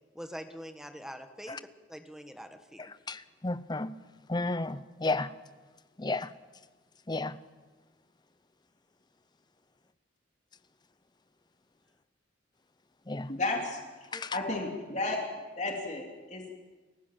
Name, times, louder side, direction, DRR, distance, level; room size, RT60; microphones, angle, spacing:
voice 1, 0.1-1.6 1.9-2.9 14.1-14.3, equal, 5° right, 1.3 m, -44 dB
voice 2, 3.1-3.9 4.3-5.3 6.0-6.3 7.1-7.3 13.1-13.3 14.1-14.3, left 2 dB, 20° left, 0.7 m, -32 dB
voice 3, 13.3-13.8 14.3-15.2 15.6-16.5, left 2 dB, 35° left, 2.9 m, -32 dB
30.0 x 15.5 x 7.5 m
head